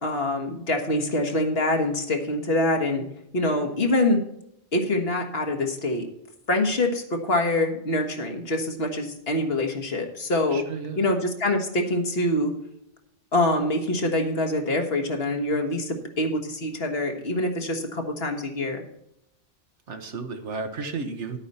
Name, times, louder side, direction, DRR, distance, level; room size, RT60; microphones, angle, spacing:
voice 1, 0.0-3.1 3.3-4.2 4.7-6.1 6.5-10.6 11.0-12.5 13.3-18.8, left 1 dB, 55° left, 3 dB, 1.8 m, -25 dB
voice 2, 10.5-11.0 19.9-21.4, right 4 dB, 75° right, 6 dB, 1.5 m, -33 dB
11.0 x 9.0 x 4.3 m, 0.77 s
omnidirectional pair, 1.2 m